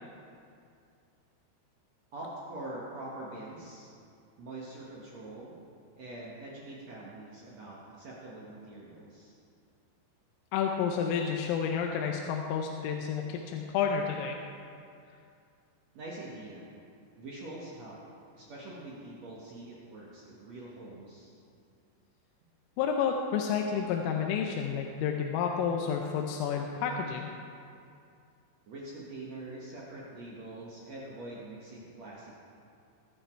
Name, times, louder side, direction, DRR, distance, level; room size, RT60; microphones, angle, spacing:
voice 1, 2.1-3.9 4.4-5.5 6.0-9.3 15.9-16.7 17.2-18.0 18.3-21.3 28.7-32.4, right 2 dB, 75° right, -5 dB, 1.5 m, -44 dB
voice 2, 10.5-14.4 22.8-27.3, left 7 dB, 85° left, 2 dB, 3.4 m, -30 dB
20.5 x 10.5 x 4.6 m, 2.5 s
omnidirectional pair, 5.8 m